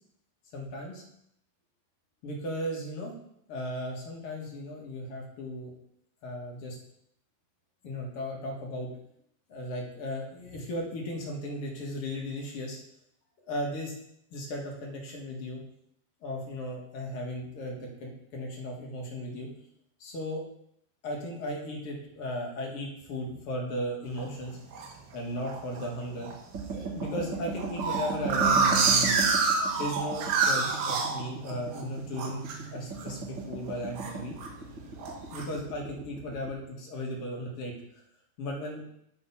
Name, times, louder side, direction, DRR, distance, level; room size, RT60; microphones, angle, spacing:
voice 1, 0.5-1.0 2.2-3.1 3.5-5.7 6.2-6.8 7.8-8.9 9.5-12.8 13.4-13.9 14.3-15.6 16.2-19.5 20.0-20.4 21.0-24.6 25.1-26.3 26.7-29.3 29.7-32.4 32.7-34.4 35.3-38.0 38.4-38.8, left 1 dB, 55° left, -2 dB, 1.7 m, -36 dB
sound 1, 24.2-24.9 25.5-25.8 26.2-26.3 26.6-26.7 27.0-31.8 32.1-32.6 32.9-33.2 33.5-34.5 35.0-35.4, right 4 dB, 75° right, 3.0 m, -27 dB
sound 2, 26.5-36.5, right 5 dB, 40° right, 1.9 m, -37 dB
10.5 x 4.4 x 5.7 m, 0.74 s
omnidirectional pair, 4.8 m